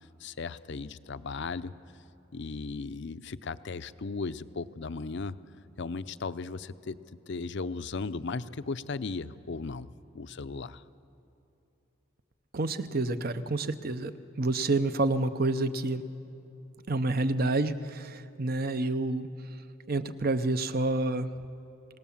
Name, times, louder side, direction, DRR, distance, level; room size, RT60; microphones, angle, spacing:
voice 1, 0.2-1.7 2.3-5.4 5.8-7.0 7.3-9.9 10.1-10.8, left 4 dB, 60° left, 13 dB, 0.6 m, -36 dB
voice 2, 12.5-16.0 16.9-19.3 19.9-21.3, right 2 dB, 50° right, 11 dB, 0.7 m, -28 dB
26.0 x 18.0 x 7.2 m, 2.9 s
head